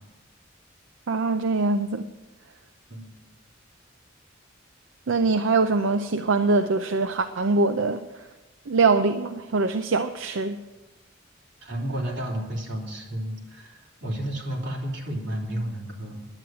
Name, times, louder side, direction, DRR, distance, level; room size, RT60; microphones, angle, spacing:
voice 1, 1.1-2.1 5.1-8.1 8.7-10.6, right 3 dB, 85° right, 8 dB, 0.6 m, -23 dB
voice 2, 2.9-3.2 11.6-16.3, right 1 dB, 65° right, -2 dB, 3.3 m, -32 dB
10.5 x 9.4 x 7.7 m, 1.1 s
head